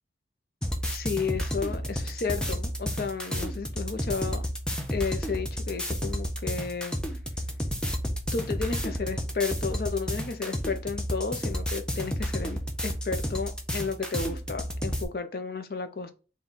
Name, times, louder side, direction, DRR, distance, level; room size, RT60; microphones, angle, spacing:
sound 1, 0.6-15.0, equal, 5° left, 0.5 m, -31 dB
voice 1, 0.8-4.4 4.9-7.0 8.3-16.1, left 5 dB, 55° left, 0.5 m, -33 dB
3.6 x 2.2 x 4.0 m
head